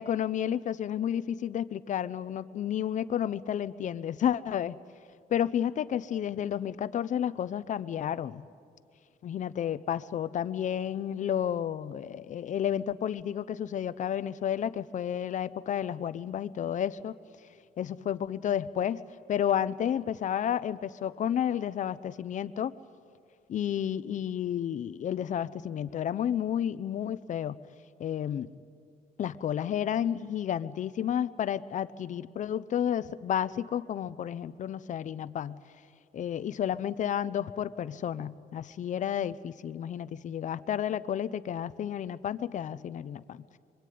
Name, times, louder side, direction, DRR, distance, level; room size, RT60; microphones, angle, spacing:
voice 1, 0.0-4.7 5.3-8.4 9.2-17.1 17.8-19.0 19.3-22.7 23.5-27.6 28.0-28.5 29.2-35.6 36.1-43.6, left 9 dB, 50° left, 15 dB, 0.7 m, -31 dB
25.0 x 24.5 x 9.4 m, 2.3 s
cardioid pair, 170°, 17 cm